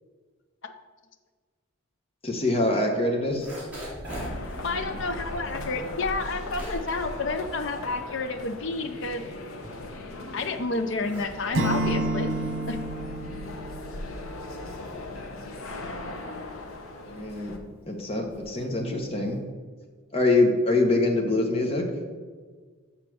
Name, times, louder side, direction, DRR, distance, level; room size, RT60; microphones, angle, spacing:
voice 1, 2.2-3.5 17.1-17.5 17.9-19.4 20.1-21.8, left 2 dB, 30° left, 2 dB, 1.2 m, -24 dB
sound 1, 3.1-8.5 8.8-10.3 10.7-19.5, equal, 5° right, 2.3 m, -43 dB
sound 2, 4.1-17.6, left 2 dB, 85° left, 1.0 m, -38 dB
voice 2, 4.6-9.2 10.3-12.3 12.7-12.8, left 3 dB, 60° left, 7 dB, 0.5 m, -30 dB
Acoustic guitar / Strum, 11.5-14.6, right 2 dB, 65° right, 1.2 m, -29 dB
7.0 x 5.7 x 6.1 m, 1.5 s
head